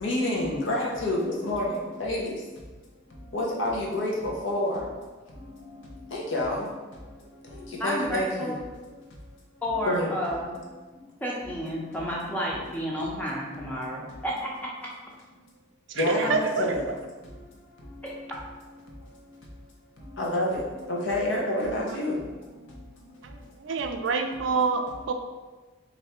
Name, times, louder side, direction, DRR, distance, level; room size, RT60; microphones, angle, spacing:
voice 1, 0.0-2.3 3.3-4.8 6.1-6.6 7.8-8.5 9.8-10.1 16.0-16.9 20.2-20.6 20.9-22.2, left 1 dB, 75° left, -2 dB, 0.9 m, -27 dB
voice 2, 7.8-8.6 9.6-10.5 11.2-14.5 16.2-16.6 18.0-18.1, equal, 10° left, -4 dB, 0.6 m, -31 dB
voice 3, 15.9-16.6 23.2-25.1, right 4 dB, 70° right, 6 dB, 0.4 m, -27 dB
3.3 x 2.6 x 4.2 m, 1.3 s
head